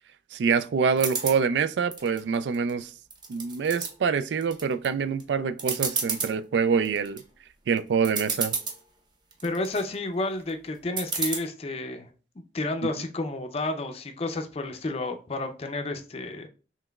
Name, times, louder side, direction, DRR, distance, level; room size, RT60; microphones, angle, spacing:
voice 1, 0.3-2.9 3.3-7.2 7.7-8.5, right 6 dB, 70° right, 0.3 m, -25 dB
sound 1, 1.0-1.4 1.9-2.7 3.1-3.9 4.4-4.9 5.2-5.3 5.6-6.3 6.9-7.2 7.8-7.9 8.0-8.8 9.3-9.8 11.0-11.4, right 4 dB, 25° right, 0.6 m, -30 dB
voice 2, 9.4-12.1 12.5-16.5, left 2 dB, 35° left, 0.5 m, -31 dB
5.7 x 3.0 x 2.3 m
head